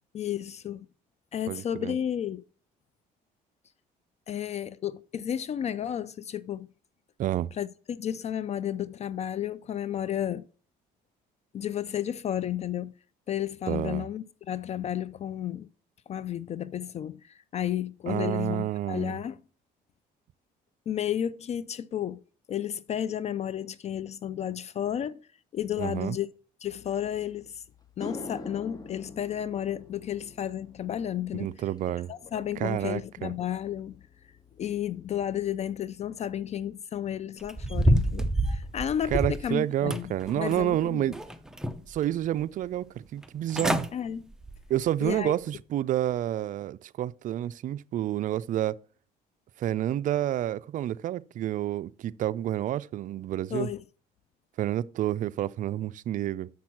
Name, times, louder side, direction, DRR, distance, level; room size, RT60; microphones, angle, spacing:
voice 1, 0.1-0.9 1.3-2.4 4.3-6.7 7.5-10.5 11.5-12.9 13.3-15.7 16.1-19.4 20.9-22.2 22.5-25.2 25.5-26.3 26.6-27.6 28.0-31.5 32.1-34.0 34.6-40.1 40.3-41.0 43.9-44.2 45.0-45.3 53.5-53.8, left 10 dB, 40° left, 0.4 m, -32 dB
voice 2, 1.5-2.0 7.2-7.5 13.7-14.1 18.1-19.2 25.8-26.2 31.3-32.1 32.6-33.3 39.1-41.2 41.9-43.9 44.7-48.8 49.6-53.7 54.6-56.5, right 12 dB, 50° right, 0.4 m, -29 dB
sound 1, 27.3-27.4 27.8-36.3 36.6-37.0 40.6-40.7 42.4-42.5 42.8-42.9 43.2-43.7, left 2 dB, 20° left, 0.9 m, -47 dB
sound 2, 37.4-39.5 39.9-40.7 41.1-42.0 42.4-42.5 43.2-43.3 43.5-43.9 44.3-44.6 45.1-45.2, right 1 dB, 5° right, 0.6 m, -27 dB
7.1 x 6.0 x 5.9 m
cardioid pair, 110°, 17 cm